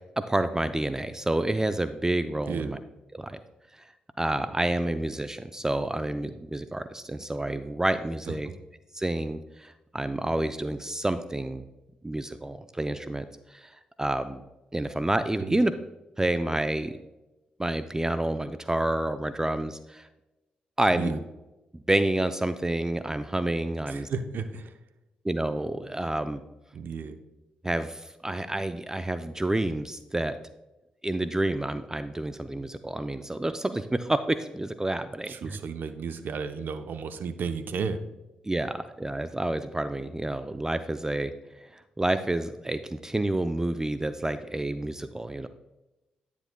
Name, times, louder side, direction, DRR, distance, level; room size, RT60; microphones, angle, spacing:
voice 1, 0.3-2.8 3.1-3.4 3.7-3.9 4.2-8.5 8.9-11.7 12.0-14.4 14.7-15.7 16.2-17.0 17.6-20.1 20.8-21.2 21.7-24.1 25.2-26.4 27.6-30.4 31.0-35.6 38.4-45.5, right 1 dB, 15° right, 11 dB, 0.4 m, -29 dB
voice 2, 23.9-24.7 26.7-27.2 35.3-38.0, right 5 dB, 60° right, 9 dB, 0.6 m, -33 dB
9.7 x 7.1 x 2.2 m, 1.0 s
hypercardioid pair, 40°, 4 cm